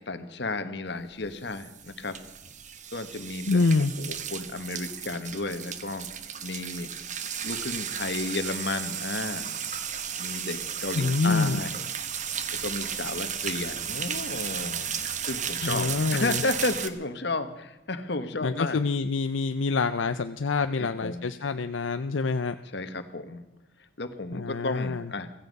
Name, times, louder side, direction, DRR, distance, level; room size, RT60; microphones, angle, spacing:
voice 1, 0.1-2.2 2.9-3.6 4.0-6.1 6.4-6.9 7.4-9.5 10.2-11.9 12.5-18.8 20.8-21.3 22.7-23.4 24.0-25.3, left 2 dB, 55° left, 10 dB, 1.4 m, -33 dB
sound 1, 1.2-16.9, right 8 dB, 40° right, 1.0 m, -34 dB
voice 2, 3.5-3.9 10.9-11.6 15.6-16.4 18.4-22.5 24.3-25.1, left 4 dB, 75° left, 9 dB, 0.6 m, -26 dB
15.5 x 15.5 x 5.4 m, 0.99 s
head